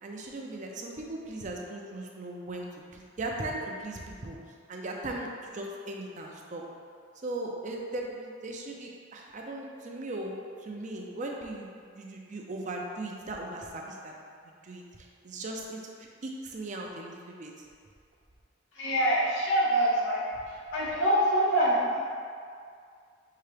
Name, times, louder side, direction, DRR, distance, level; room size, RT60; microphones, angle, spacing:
voice 1, 0.0-2.7 2.9-4.4 4.7-6.6 7.2-10.4 10.6-14.2 14.4-17.7, right 2 dB, 40° right, 0 dB, 0.5 m, -38 dB
voice 2, 18.7-20.2 20.7-22.0, right 1 dB, 80° left, -7 dB, 1.2 m, -25 dB
5.7 x 2.9 x 3.3 m, 2.2 s
head